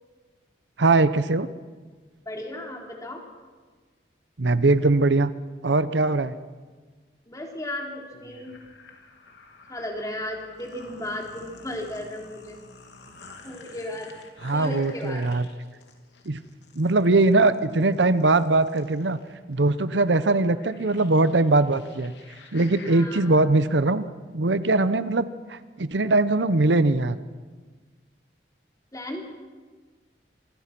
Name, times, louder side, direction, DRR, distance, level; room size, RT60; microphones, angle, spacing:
voice 1, 0.8-1.5 4.4-5.3 5.6-6.4 14.4-15.4 16.3-16.4 16.8-19.2 19.5-22.1 22.5-24.0 24.3-27.2, right 2 dB, 85° right, 14 dB, 0.9 m, -21 dB
voice 2, 2.3-3.2 7.3-8.6 9.7-12.6 13.4-14.1 14.5-15.3 22.9-23.3 28.9-29.2, left 1 dB, 20° left, 1 dB, 3.5 m, -35 dB
sound 1, 8.1-23.1, left 3 dB, 80° left, 3.1 m, -50 dB
27.0 x 21.0 x 6.0 m, 1.4 s
head